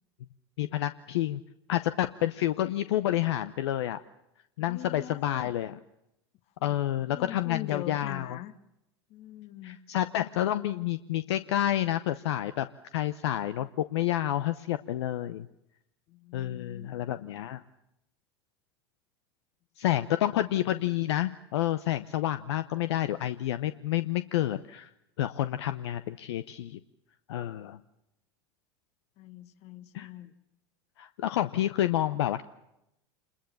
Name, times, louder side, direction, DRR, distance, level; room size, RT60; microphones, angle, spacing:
voice 1, 0.6-1.4 1.7-4.0 4.6-5.8 6.6-8.4 9.6-12.7 12.9-15.5 16.3-17.6 19.8-24.9 25.2-26.8 27.3-27.8 29.9-30.1 31.0-32.4, left 13 dB, 75° left, 12 dB, 0.8 m, -29 dB
voice 2, 4.6-5.5 6.6-8.5 9.1-9.8 16.1-17.2 29.2-30.3, left 13 dB, 50° left, 13 dB, 1.6 m, -43 dB
27.0 x 21.5 x 7.1 m, 0.84 s
hypercardioid pair, 90°, 14 cm